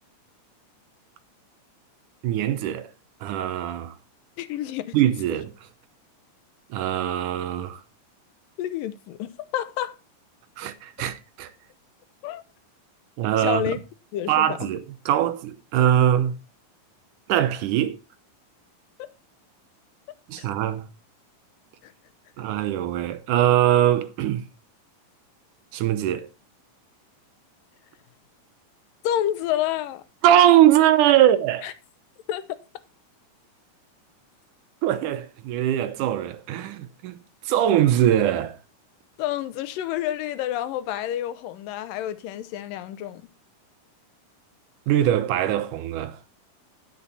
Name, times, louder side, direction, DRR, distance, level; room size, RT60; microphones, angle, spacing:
voice 1, 2.2-2.9 3.2-3.9 4.9-5.5 6.7-7.8 10.6-11.5 13.2-13.7 14.3-16.3 17.3-18.0 20.3-20.9 22.4-24.5 25.7-26.3 30.2-31.7 34.8-37.2 37.5-38.6 44.9-46.2, right 11 dB, 80° right, 2.3 m, -21 dB
voice 2, 4.4-5.0 8.6-10.0 12.2-12.4 13.4-13.8 14.1-14.7 19.0-19.1 20.3-20.5 21.8-21.9 29.0-30.0 31.6-31.7 32.3-32.4 39.2-43.2, left 12 dB, 90° left, 2.5 m, -29 dB
10.0 x 8.4 x 4.0 m
omnidirectional pair, 3.8 m